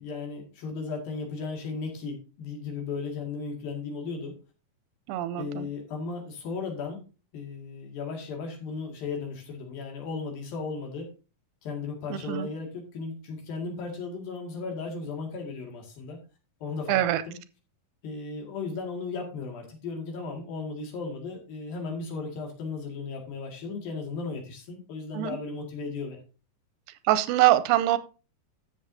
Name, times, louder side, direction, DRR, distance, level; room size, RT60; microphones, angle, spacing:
voice 1, 0.0-4.3 5.4-7.1 7.3-11.1 11.6-16.2 16.6-17.0 17.3-17.4 18.0-26.2, left 4 dB, 85° left, 1 dB, 3.9 m, -35 dB
voice 2, 5.1-5.7 12.1-12.5 16.9-17.2 25.1-25.4 27.0-28.0, right 14 dB, 90° right, 13 dB, 2.4 m, -24 dB
12.5 x 7.2 x 2.7 m, 0.33 s
omnidirectional pair, 4.0 m